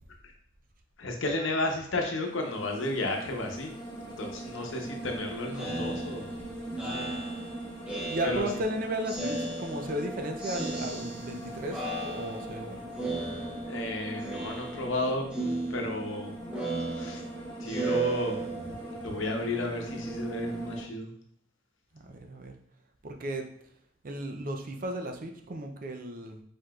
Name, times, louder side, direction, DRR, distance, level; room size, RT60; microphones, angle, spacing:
voice 1, 1.0-3.7 4.0-6.3 8.2-8.5 13.7-15.3 15.7-16.4 16.9-17.2 17.6-18.5 19.0-21.1, left 2 dB, 75° left, 2 dB, 0.9 m, -32 dB
sound 1, 2.1-20.8, right 1 dB, 25° left, 1.4 m, -40 dB
Speech synthesizer, 5.5-8.7 9.0-10.1 10.4-11.4 11.7-12.6 13.0-13.9 14.2-15.0 15.3-18.8, right 3 dB, 5° right, 0.9 m, -35 dB
voice 2, 8.1-12.9 21.9-22.5 23.0-23.5 24.0-26.4, right 1 dB, 45° right, 4 dB, 0.5 m, -35 dB
4.8 x 4.5 x 2.4 m, 0.67 s
head